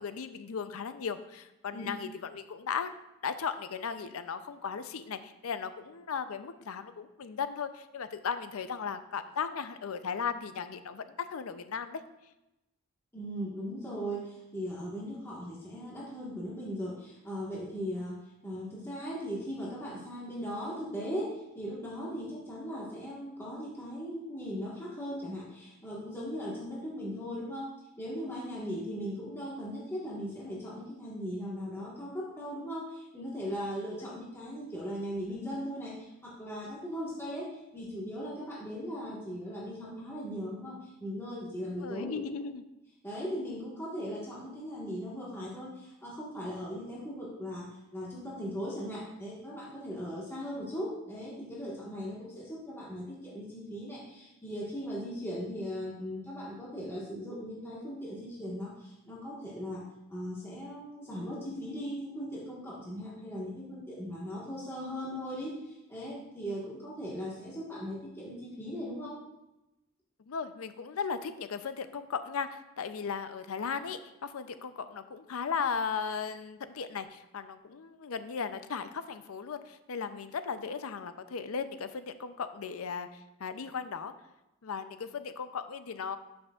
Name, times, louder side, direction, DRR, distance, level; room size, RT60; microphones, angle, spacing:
voice 1, 0.0-2.9 3.2-12.0 41.8-42.6 70.3-84.1 84.6-86.2, left 6 dB, 75° left, 11 dB, 0.5 m, -36 dB
voice 2, 13.1-27.7 28.0-42.2 43.0-59.8 60.1-69.2, equal, 10° left, -6 dB, 1.4 m, -38 dB
11.5 x 6.1 x 2.4 m, 0.93 s
head